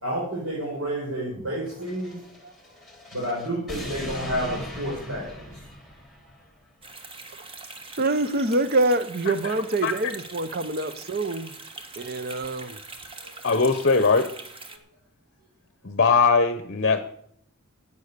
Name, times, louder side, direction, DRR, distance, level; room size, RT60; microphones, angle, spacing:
voice 1, 0.0-2.2 3.1-5.3 5.5-5.6 13.2-13.3, right 1 dB, 75° right, -6 dB, 4.8 m, -30 dB
sound 1, 1.7-6.5, equal, ahead, 2.8 m, -39 dB
sound 2, 6.8-14.8, right 3 dB, 25° right, 1.1 m, -43 dB
voice 2, 8.0-11.5 12.0-12.8, right 2 dB, 45° right, 13 dB, 0.7 m, -25 dB
voice 3, 13.4-14.3 15.8-17.0, left 4 dB, 45° left, 11 dB, 0.8 m, -20 dB
12.0 x 8.4 x 6.7 m, 0.70 s
head